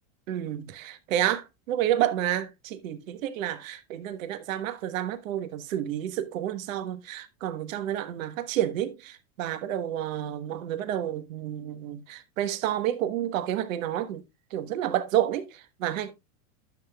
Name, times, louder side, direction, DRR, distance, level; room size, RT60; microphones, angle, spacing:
voice 1, 0.3-14.2 14.5-16.1, right 11 dB, 75° right, 1.2 m, -30 dB
12.5 x 7.0 x 2.3 m
supercardioid pair, 130°, 40 cm